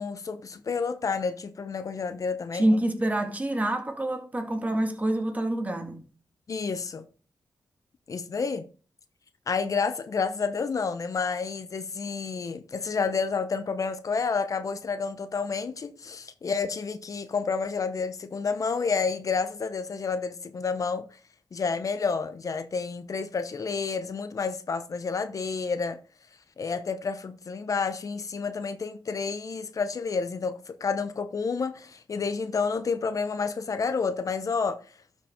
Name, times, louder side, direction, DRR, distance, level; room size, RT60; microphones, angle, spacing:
voice 1, 0.0-2.7 6.5-7.0 8.1-8.7 9.5-21.1 21.5-26.0 26.6-34.8, left 5 dB, 50° left, 0.7 m, -30 dB
voice 2, 2.5-6.0, right 1 dB, 20° right, 1.7 m, -26 dB
12.0 x 5.3 x 3.6 m
cardioid pair, 80°, 7 cm